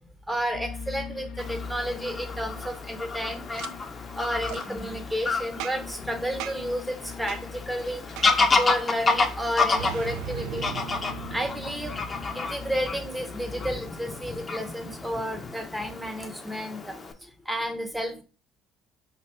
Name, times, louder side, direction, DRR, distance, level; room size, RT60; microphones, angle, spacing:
voice 1, 0.3-3.7 4.1-10.7 11.3-12.0 12.3-18.2, equal, 5° right, 6 dB, 0.9 m, -32 dB
sound 1, 0.5-13.8, left 5 dB, 60° left, 0.4 m, -42 dB
Fowl / Bird vocalization bird call bird song, 1.4-17.1, left 3 dB, 30° left, 0.7 m, -30 dB
Boom, 3.5-3.7 4.4-4.6 5.6-6.0 6.4-6.8 7.3-7.4 8.2-8.5 9.8-12.5, right 11 dB, 70° right, 0.3 m, -38 dB
3.2 x 2.5 x 4.4 m, 0.34 s
hypercardioid pair, 60°, 0 cm